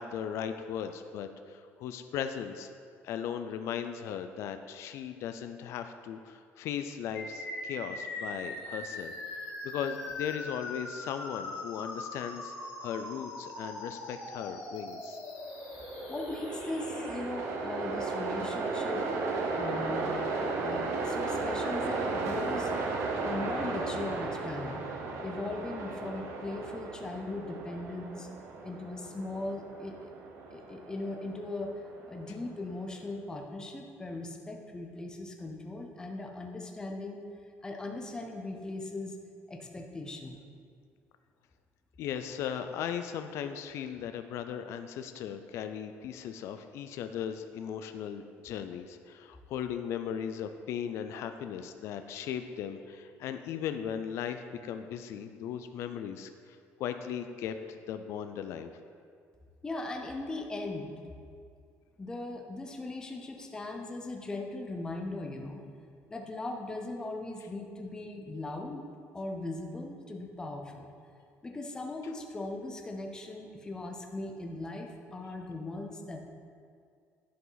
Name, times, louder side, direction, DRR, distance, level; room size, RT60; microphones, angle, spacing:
voice 1, 0.0-2.7 3.0-12.5 12.8-15.2 42.0-58.7, left 8 dB, 60° left, 8 dB, 0.4 m, -37 dB
sound 1, 7.1-17.1, left 2 dB, 85° left, 2.2 m, -41 dB
Train, 15.5-32.7, right 3 dB, 60° right, 0.9 m, -35 dB
voice 2, 16.1-20.1 20.6-22.7 23.2-24.8 25.2-28.3 28.6-30.1 30.5-31.7 32.1-37.2 37.6-39.2 39.5-40.4 59.6-60.9 62.0-65.6 66.1-68.8 69.1-70.9 71.4-76.2, left 2 dB, 15° left, 2 dB, 0.7 m, -39 dB
11.0 x 4.9 x 4.0 m, 2.2 s
cardioid pair, 155°, 5 cm